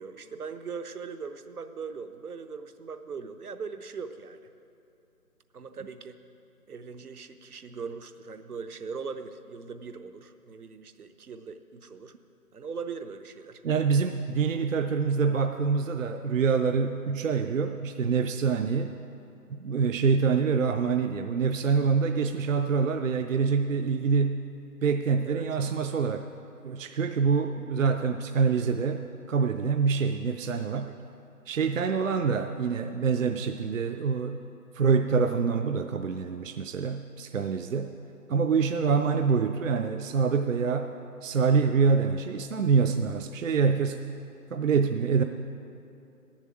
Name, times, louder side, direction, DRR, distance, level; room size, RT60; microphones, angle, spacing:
voice 1, 0.0-4.4 5.5-6.2 6.7-12.1 12.5-13.6 25.3-25.5 30.7-30.9 31.6-31.9, right 5 dB, 75° right, 9 dB, 0.9 m, -40 dB
voice 2, 13.6-19.0 19.5-24.4 24.8-26.3 26.6-30.9 31.5-34.4 34.7-37.9 38.3-40.9 41.2-44.0 44.5-45.2, right 5 dB, 60° right, 7 dB, 0.5 m, -26 dB
10.5 x 7.4 x 7.5 m, 2.7 s
figure-of-eight pair, 160°, 45 cm